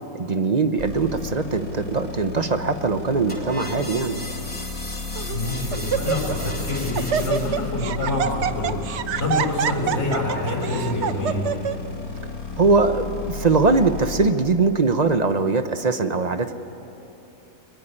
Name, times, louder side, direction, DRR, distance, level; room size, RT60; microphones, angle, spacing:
voice 1, 0.1-4.2 12.6-16.5, right 4 dB, 35° right, 9 dB, 0.8 m, -21 dB
sound 1, 0.8-14.3, left 4 dB, 75° left, 4.5 m, -33 dB
sound 2, 3.3-7.7, equal, 5° left, 3.3 m, -36 dB
Laughter, 3.4-3.8 4.6-4.7 5.2-5.4 5.7-6.5 6.7-11.7, right 8 dB, 60° right, 0.9 m, -26 dB
voice 2, 5.3-8.7 9.2-11.4, left 2 dB, 45° left, -3 dB, 5.3 m, -26 dB
22.0 x 21.0 x 9.9 m, 2.9 s
omnidirectional pair, 1.6 m